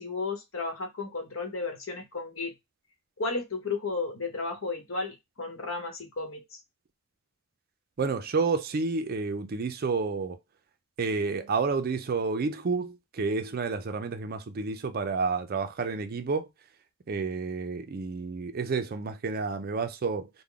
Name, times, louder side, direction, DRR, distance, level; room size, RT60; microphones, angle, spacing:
voice 1, 0.0-2.5 3.2-6.6, left 3 dB, 65° left, 1.0 m, -33 dB
voice 2, 8.0-10.4 11.0-16.5 17.1-20.3, right 4 dB, 45° right, 0.4 m, -30 dB
3.6 x 2.1 x 3.4 m
head